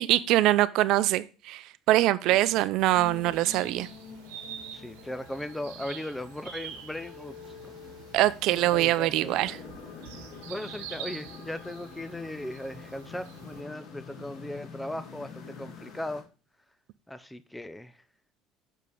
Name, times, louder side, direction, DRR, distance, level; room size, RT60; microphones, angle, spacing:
voice 1, 0.0-3.9 8.1-9.6, right 15 dB, 65° right, 0.5 m, -24 dB
sound 1, 2.8-13.6, right 8 dB, 85° right, 1.2 m, -46 dB
sound 2, 2.9-16.2, left 5 dB, 55° left, 2.4 m, -46 dB
voice 2, 4.7-7.3 7.6-7.7 8.5-9.5 10.5-16.2 17.1-17.9, left 1 dB, 5° left, 0.6 m, -38 dB
6.3 x 5.5 x 5.3 m
supercardioid pair, 100°, 0 cm